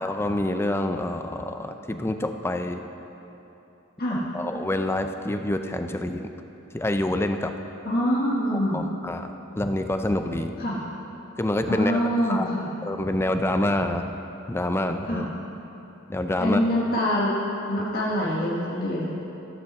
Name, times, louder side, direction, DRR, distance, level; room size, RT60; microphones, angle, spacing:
voice 1, 0.0-2.9 4.3-6.3 6.7-7.5 8.7-10.5 11.4-12.0 12.2-12.5 12.8-14.1 14.5-15.3 16.1-16.6, left 1 dB, 10° left, 6 dB, 0.4 m, -27 dB
voice 2, 7.8-8.8 10.6-10.8 11.7-12.7 15.1-15.3 16.4-17.3 17.7-19.1, equal, 50° left, -6 dB, 1.3 m, -25 dB
14.0 x 5.4 x 7.1 m, 3.0 s
head